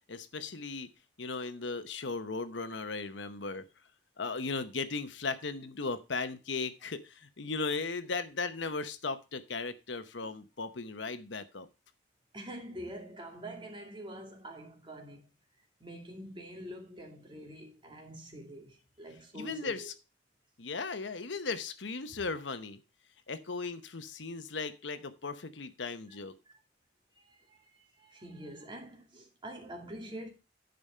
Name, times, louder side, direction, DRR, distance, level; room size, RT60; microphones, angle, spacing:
voice 1, 0.1-0.9 1.2-3.6 4.2-11.7 19.3-19.9 20.6-22.8 23.3-26.3, left 4 dB, 75° left, 0.9 m, -37 dB
voice 2, 12.3-15.3 15.8-19.9 26.5-26.6 27.2-30.3, right 1 dB, 25° right, 2.4 m, -46 dB
10.5 x 5.2 x 5.5 m
head